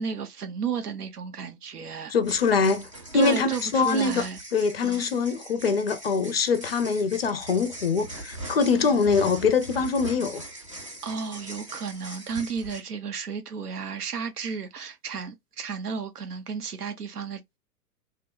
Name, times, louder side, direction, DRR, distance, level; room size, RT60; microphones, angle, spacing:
voice 1, 0.0-2.1 3.1-4.4 4.8-5.1 11.0-17.4, right 6 dB, 75° right, 0.7 m, -33 dB
voice 2, 2.1-2.9 3.1-4.3 4.5-10.4, left 5 dB, 45° left, 0.4 m, -23 dB
sound 1, 2.2-12.8, right 1 dB, 25° right, 0.3 m, -41 dB
2.9 x 2.0 x 2.2 m
figure-of-eight pair, 110°, 46 cm